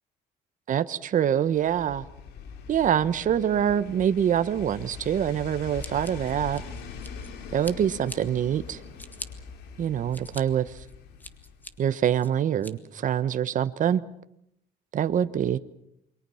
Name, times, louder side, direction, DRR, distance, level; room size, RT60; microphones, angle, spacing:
voice 1, 0.7-2.0 2.7-6.6 7.5-8.8 9.8-10.7 11.8-14.0 14.9-15.6, right 9 dB, 50° right, 12 dB, 1.2 m, -25 dB
sound 1, 1.5-11.9 12.2-12.3, left 5 dB, 80° left, 3.4 m, -42 dB
Scissors, 5.8-7.3 7.6-8.2 8.7-9.3 9.8-10.4 10.9-11.7 12.2-12.7, left 1 dB, 10° left, 1.9 m, -42 dB
28.5 x 23.5 x 5.8 m, 0.75 s
cardioid pair, 110°, 17 cm